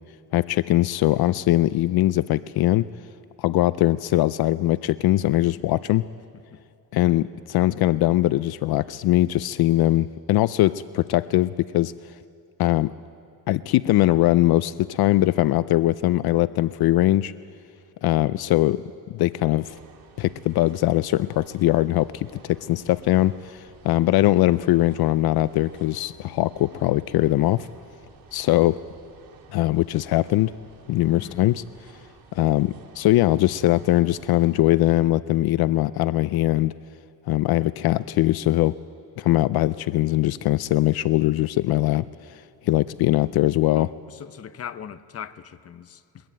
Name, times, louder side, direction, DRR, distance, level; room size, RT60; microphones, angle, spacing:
voice 1, 0.3-2.9 3.4-6.0 6.9-12.2 12.6-12.9 13.5-17.3 18.0-18.8 19.1-19.8 20.2-27.7 28.3-28.8 29.5-30.5 30.9-31.6 32.3-36.7 37.3-38.7 39.2-43.9, left 16 dB, 70° left, 0.5 m, -21 dB
sound 1, 19.6-34.6, right 5 dB, 65° right, 2.8 m, -52 dB
voice 2, 43.8-46.2, left 8 dB, 40° left, 0.8 m, -39 dB
22.0 x 22.0 x 9.1 m
cardioid pair, 135°, 38 cm